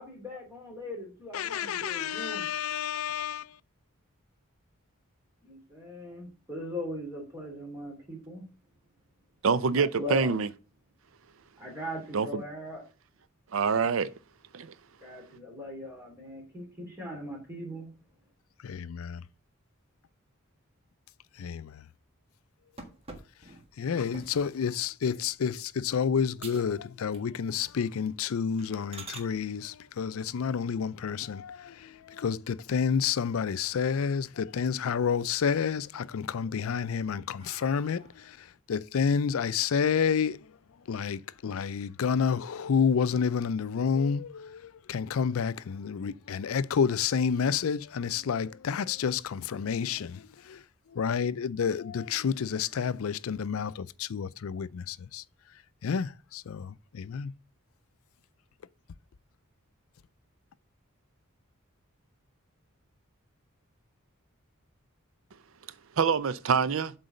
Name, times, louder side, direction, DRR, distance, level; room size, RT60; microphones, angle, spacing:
voice 1, 0.0-2.5 5.4-8.4 9.7-10.3 11.6-12.8 15.0-17.9, left 1 dB, 10° right, 2.9 m, -39 dB
voice 2, 1.3-3.5 18.6-19.2 21.4-21.8 23.8-40.4 40.9-50.6 50.9-55.2 55.8-57.3, left 6 dB, 75° left, 0.4 m, -29 dB
voice 3, 9.4-10.5 12.1-12.4 13.5-14.1 14.5-14.7 66.0-66.9, right 5 dB, 65° right, 0.5 m, -25 dB
sound 1, 22.8-24.6 25.1-25.4 25.9-26.0 26.4-26.8 27.1-27.6 27.9-28.1 28.6-29.3 31.3-32.0 32.4-32.5 32.9-33.0 33.3-34.1 34.5-35.1 35.5-36.1 36.6-38.4, right 3 dB, 30° right, 1.5 m, -49 dB
7.8 x 4.0 x 6.4 m
head